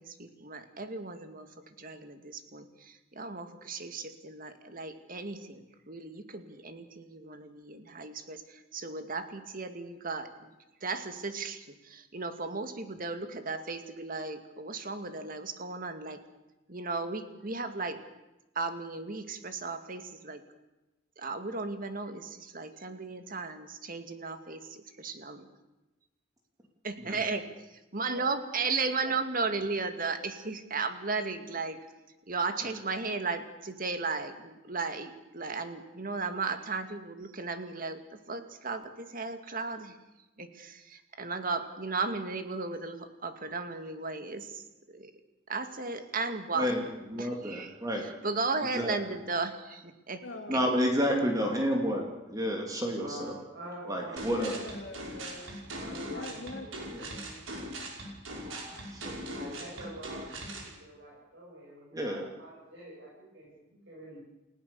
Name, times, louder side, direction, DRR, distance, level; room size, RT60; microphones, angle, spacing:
voice 1, 0.0-10.5 10.8-16.2 16.7-18.0 18.5-20.4 21.2-25.4 26.8-27.5 27.9-31.8 32.3-40.0 40.4-45.1 45.5-46.7 47.2-50.2 50.5-50.6, right 4 dB, 45° right, 8 dB, 2.2 m, -35 dB
voice 2, 47.1-48.0 48.7-49.0 50.5-53.4 53.9-54.6 56.9-57.1 58.3-59.2 61.9-62.3, equal, 20° right, 1 dB, 2.8 m, -30 dB
voice 3, 50.2-50.8 54.2-55.6 56.1-57.5, left 2 dB, 65° left, -2 dB, 3.6 m, -43 dB
voice 4, 52.9-54.6 55.7-57.2 59.3-64.2, right 1 dB, 65° right, -6 dB, 7.9 m, -46 dB
sound 1, 54.2-60.7, right 1 dB, 85° right, 5.7 m, -40 dB
29.5 x 17.0 x 7.0 m, 1.0 s
head